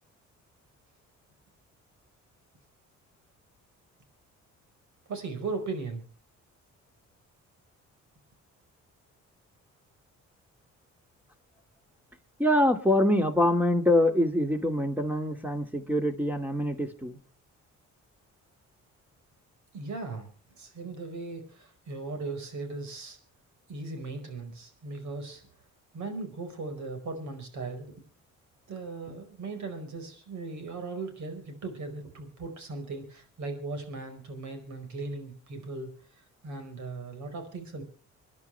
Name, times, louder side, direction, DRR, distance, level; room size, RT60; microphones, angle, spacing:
voice 1, 5.1-6.0 19.7-20.3 20.6-23.2 23.7-25.4 25.9-27.9 28.7-35.9 36.2-37.8, right 3 dB, 70° right, 6 dB, 4.9 m, -38 dB
voice 2, 12.4-17.2, left 1 dB, 5° right, 6 dB, 2.3 m, -25 dB
26.5 x 10.5 x 3.4 m, 0.39 s
cardioid pair, 90°, 30 cm